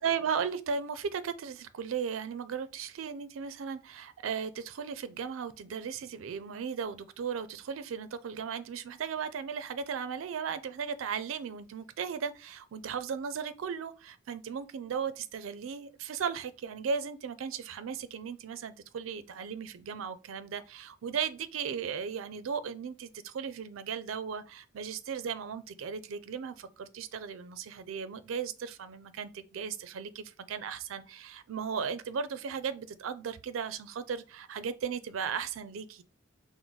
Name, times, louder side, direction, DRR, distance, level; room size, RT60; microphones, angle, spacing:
voice 1, 0.0-36.0, right 6 dB, 85° right, 0.4 m, -36 dB
4.5 x 2.1 x 3.9 m
head